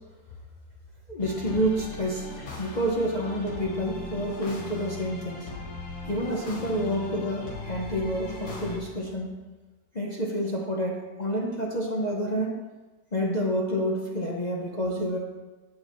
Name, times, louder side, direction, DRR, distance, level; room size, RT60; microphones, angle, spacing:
voice 1, 1.1-2.3 2.6-5.5 6.1-9.4 9.9-12.6 13.1-15.2, equal, 50° left, -2 dB, 0.5 m, -28 dB
sound 1, 1.2-8.8, left 2 dB, 85° left, 2.1 m, -39 dB
8.6 x 7.4 x 3.1 m, 1.2 s
omnidirectional pair, 2.0 m